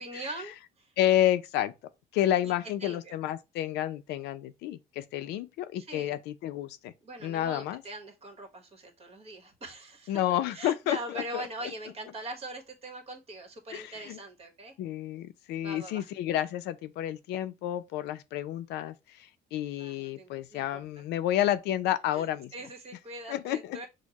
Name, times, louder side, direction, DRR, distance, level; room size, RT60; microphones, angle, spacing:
voice 1, 0.0-0.9 2.4-2.5 2.8-3.2 5.8-6.2 7.0-14.7 15.6-16.1 19.8-20.8 22.1-23.9, right 1 dB, 35° right, 1.4 m, -42 dB
voice 2, 1.0-1.7 2.1-6.9 7.2-7.8 10.1-11.5 13.7-14.2 14.8-22.5 23.3-23.9, left 12 dB, 85° left, 0.5 m, -30 dB
6.4 x 2.1 x 2.9 m
cardioid pair, 110°, 17 cm